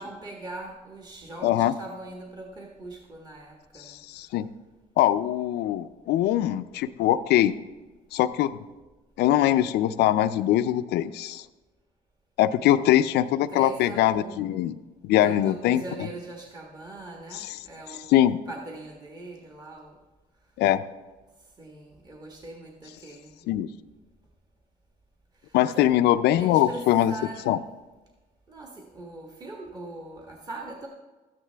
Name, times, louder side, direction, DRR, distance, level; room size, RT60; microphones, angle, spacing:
voice 1, 0.0-4.0 12.6-13.1 13.5-14.5 15.1-20.0 21.6-23.4 25.4-25.9 26.4-27.6 28.5-30.9, right 2 dB, 25° right, 0 dB, 1.5 m, -41 dB
voice 2, 1.4-1.7 3.9-4.5 5.0-7.5 8.1-8.5 9.2-11.4 12.4-14.8 15.0-15.8 17.4-17.5 18.1-18.4 20.6-20.8 23.5-23.7 25.5-27.1 27.5-27.6, left 12 dB, 80° left, 12 dB, 0.5 m, -22 dB
13.5 x 9.5 x 3.4 m, 1.2 s
cardioid pair, 110°, 17 cm